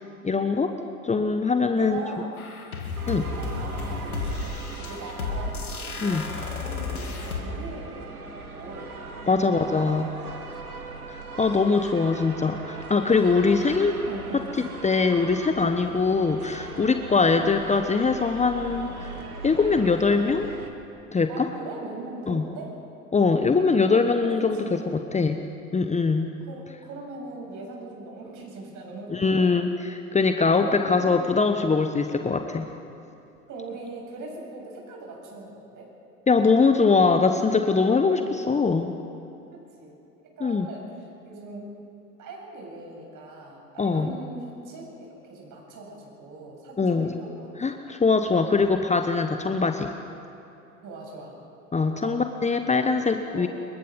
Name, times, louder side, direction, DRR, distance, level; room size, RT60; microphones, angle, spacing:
voice 1, 0.2-0.8 1.0-2.0 3.1-3.2 6.0-6.3 9.3-10.1 11.1-14.0 14.8-19.1 19.4-20.5 21.1-21.5 22.3-22.5 23.1-25.4 25.7-26.3 29.1-32.7 36.3-38.9 40.4-40.7 43.8-44.1 46.8-47.2 47.6-49.9 51.7-53.5, left 4 dB, 15° left, 6 dB, 1.1 m, -22 dB
voice 2, 1.7-2.3 3.0-5.6 6.0-10.9 14.1-14.5 17.2-17.4 21.3-22.7 24.1-24.9 26.4-29.5 30.4-31.2 31.5-31.8 33.5-35.9 38.1-38.4 39.5-40.0 40.4-41.8 42.2-47.7 49.6-49.8 50.8-51.4 52.0-52.1 53.3-53.5, right 2 dB, 45° right, -1 dB, 7.8 m, -41 dB
sound 1, 2.4-7.4, left 4 dB, 85° left, 2.7 m, -33 dB
sound 2, 2.9-20.7, right 3 dB, 90° right, 1.7 m, -40 dB
27.5 x 23.0 x 5.4 m, 2.8 s
figure-of-eight pair, 75°, 43 cm